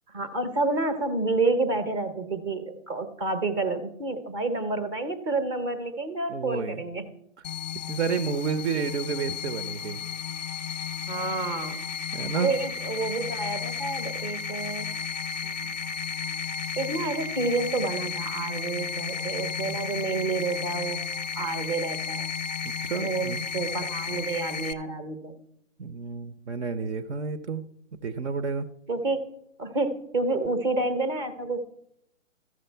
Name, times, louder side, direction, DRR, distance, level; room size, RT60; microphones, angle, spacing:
voice 1, 0.1-7.0 11.1-11.8 12.3-14.9 15.4-15.8 16.8-21.0 21.4-22.3 23.0-25.3 28.9-29.2 29.6-31.6, right 3 dB, 20° right, 9 dB, 0.7 m, -29 dB
voice 2, 6.3-6.8 7.9-10.0 12.1-12.5 19.7-19.8 22.6-23.4 25.8-27.6 28.0-28.7, right 5 dB, 60° right, 11 dB, 0.8 m, -30 dB
sound 1, 7.4-24.7, left 6 dB, 35° left, 0.5 m, -33 dB
14.0 x 6.4 x 4.5 m, 0.77 s
hypercardioid pair, 145°, 40 cm